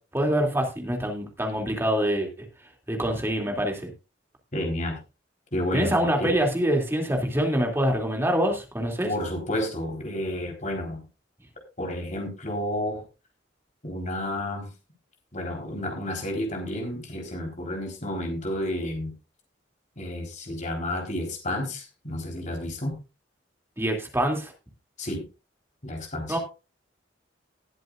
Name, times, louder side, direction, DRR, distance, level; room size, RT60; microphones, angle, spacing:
voice 1, 0.1-2.3 2.9-3.9 5.7-9.1 23.8-24.5 26.3-26.4, right 1 dB, 15° right, 2 dB, 2.7 m, -25 dB
voice 2, 4.5-5.0 5.5-6.4 9.0-11.0 11.8-13.0 13.8-14.7 15.3-19.1 20.0-23.0 25.0-25.3 25.8-26.4, left 1 dB, 40° left, 1 dB, 3.9 m, -31 dB
19.5 x 7.9 x 2.5 m, 0.30 s
head